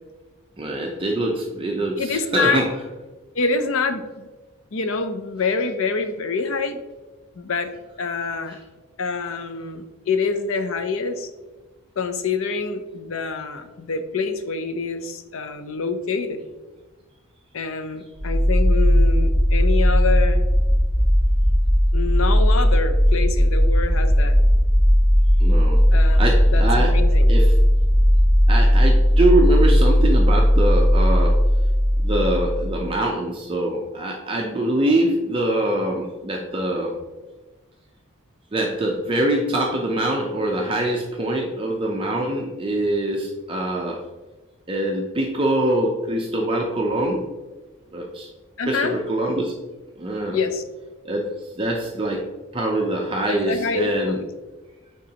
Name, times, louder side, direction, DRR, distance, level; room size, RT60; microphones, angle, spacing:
voice 1, 0.6-2.7 25.4-25.8 26.2-26.9 27.3-27.5 28.5-31.4 32.0-37.0 38.5-44.0 44.7-47.2 47.9-48.3 48.7-49.5 50.0-50.4 51.0-51.3 51.6-52.2 52.5-54.2, right 1 dB, 25° right, 0 dB, 0.5 m, -24 dB
voice 2, 2.0-2.7 3.3-4.3 4.7-6.8 7.4-7.7 8.0-8.6 9.0-11.3 12.0-16.4 17.5-20.5 21.9-24.4 25.9-27.3 48.6-49.0 50.3-50.6 53.3-54.3, left 4 dB, 70° left, 9 dB, 0.6 m, -26 dB
sound 1, 18.1-32.9, equal, 35° left, 1.0 m, -17 dB
9.2 x 3.6 x 2.8 m, 1.2 s
head